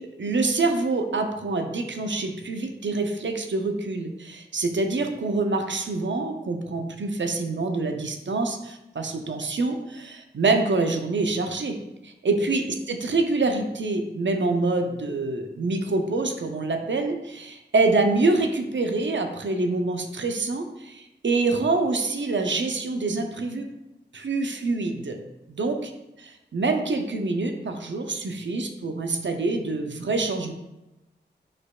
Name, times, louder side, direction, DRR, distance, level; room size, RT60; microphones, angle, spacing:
voice 1, 0.2-11.8 12.0-23.7 24.1-25.2 25.5-25.9 26.5-30.5, right 3 dB, 80° right, 5 dB, 0.6 m, -26 dB
5.0 x 4.2 x 2.3 m, 0.93 s
wide cardioid pair, 50°, 19 cm